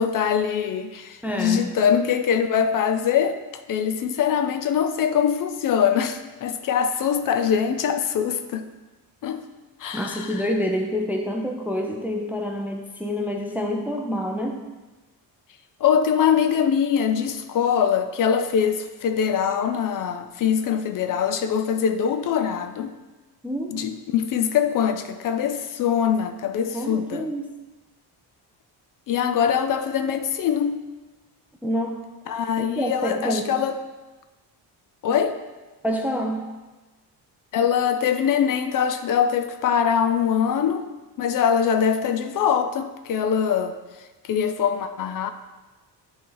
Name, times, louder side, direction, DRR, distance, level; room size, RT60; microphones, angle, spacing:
voice 1, 0.0-3.4 3.7-8.7 9.2-9.4 9.8-10.3 15.8-22.9 23.7-27.3 29.1-30.8 32.3-33.8 35.0-35.4 37.5-40.9 41.2-43.8 44.3-45.3, left 8 dB, 50° left, 9 dB, 0.5 m, -23 dB
voice 2, 1.2-1.8 9.9-14.6 23.4-23.7 26.7-27.5 31.6-32.1 32.6-33.5 35.8-36.5, equal, 5° right, 2 dB, 0.4 m, -27 dB
11.0 x 4.5 x 3.9 m, 1.2 s
cardioid pair, 175°, 42 cm